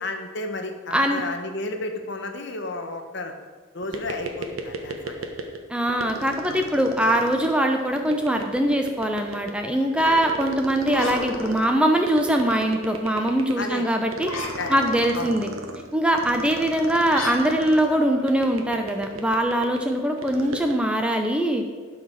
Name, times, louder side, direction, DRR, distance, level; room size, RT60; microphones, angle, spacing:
voice 1, 0.0-3.3 3.7-5.2 6.4-6.6 13.6-13.9 14.6-14.8 15.2-15.3, left 2 dB, 55° left, 5 dB, 1.1 m, -32 dB
voice 2, 0.9-1.2 5.7-14.3 14.7-15.5 15.9-21.6, right 1 dB, 5° right, 3 dB, 0.7 m, -22 dB
sound 1, 3.8-5.6 5.9-20.8, right 3 dB, 80° right, 1.2 m, -36 dB
sound 2, 10.8-12.3 14.2-15.3 17.1-19.0, left 2 dB, 80° left, 1.8 m, -35 dB
12.0 x 4.9 x 6.3 m, 1.5 s
head